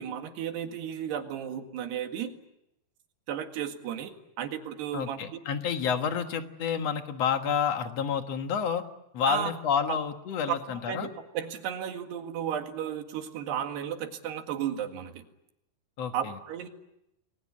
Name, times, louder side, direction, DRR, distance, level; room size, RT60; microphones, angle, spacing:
voice 1, 0.0-2.3 3.3-5.4 9.3-9.5 9.9-10.0 10.5-10.6 10.9-15.2 16.1-16.7, right 9 dB, 85° right, 5 dB, 4.1 m, -34 dB
voice 2, 4.9-8.8 9.1-11.1 16.0-16.4, left 7 dB, 55° left, 7 dB, 2.0 m, -29 dB
29.5 x 21.5 x 8.5 m, 0.86 s
omnidirectional pair, 4.6 m